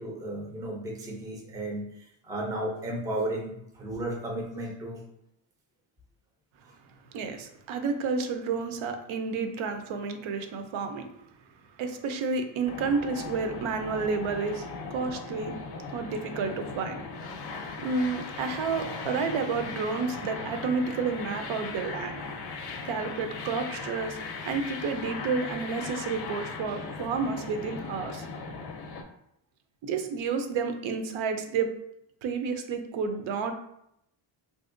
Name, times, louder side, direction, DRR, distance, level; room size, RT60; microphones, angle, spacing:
voice 1, 0.0-5.0, right 1 dB, 10° right, -1 dB, 0.3 m, -34 dB
voice 2, 7.1-11.1 11.8-14.7 14.9-15.6 15.9-17.0 17.8-22.2 22.8-24.2 24.4-28.2 29.8-31.7 32.2-33.5, right 5 dB, 80° right, 6 dB, 0.6 m, -30 dB
sound 1, 12.6-29.0, left 4 dB, 55° left, 0.5 m, -38 dB
3.4 x 2.6 x 2.5 m, 0.76 s
cardioid pair, 170°, 46 cm